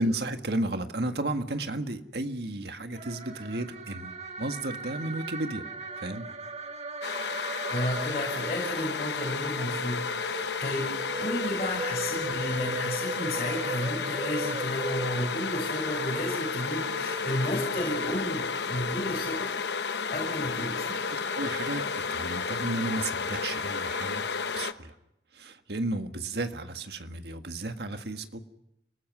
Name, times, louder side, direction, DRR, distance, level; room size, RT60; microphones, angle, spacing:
voice 1, 0.0-5.6 6.0-6.3 21.1-24.3 24.5-24.9 25.3-28.4, right 2 dB, 65° right, 7 dB, 1.7 m, -33 dB
sound 1, 2.9-18.2, right 2 dB, 40° right, 2.0 m, -38 dB
sound 2, 7.0-24.7, left 5 dB, 70° left, 1.0 m, -32 dB
voice 2, 7.7-10.9 11.2-19.6 20.1-21.1, left 1 dB, 40° left, -3 dB, 7.4 m, -32 dB
29.5 x 19.0 x 6.2 m, 0.85 s
head